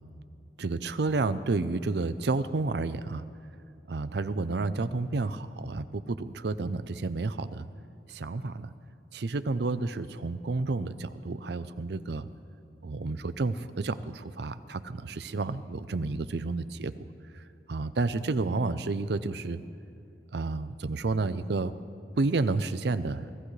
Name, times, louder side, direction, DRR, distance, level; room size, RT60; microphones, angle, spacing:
voice 1, 0.6-3.2 3.9-7.7 8.1-8.7 9.1-12.3 12.8-17.0 17.7-19.6 20.3-21.7 22.2-23.3, right 3 dB, 70° right, 13 dB, 0.5 m, -30 dB
25.0 x 16.0 x 3.3 m, 2.6 s
head